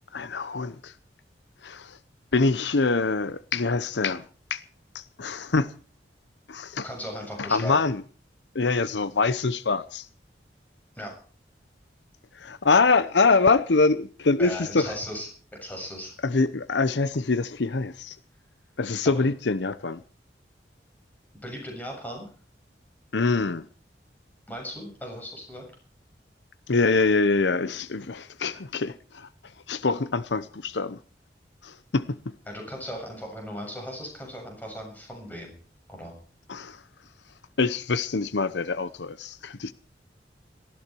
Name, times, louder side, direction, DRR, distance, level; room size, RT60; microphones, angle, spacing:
voice 1, 0.1-0.9 1.6-2.0 2.3-4.2 4.5-4.6 4.9-5.7 6.5-6.9 7.4-8.0 8.5-10.1 12.3-14.9 16.2-18.2 18.8-20.0 23.1-23.6 26.7-29.3 29.7-31.0 31.6-32.2 36.5-36.8 37.6-39.7, left 3 dB, 85° left, 0.8 m, -24 dB
voice 2, 6.8-7.9 11.0-11.1 14.4-15.3 15.6-16.1 19.0-19.3 21.3-22.3 24.5-25.6 32.5-35.5 35.9-36.1, equal, 10° left, 7.2 m, -37 dB
19.0 x 14.5 x 4.6 m
head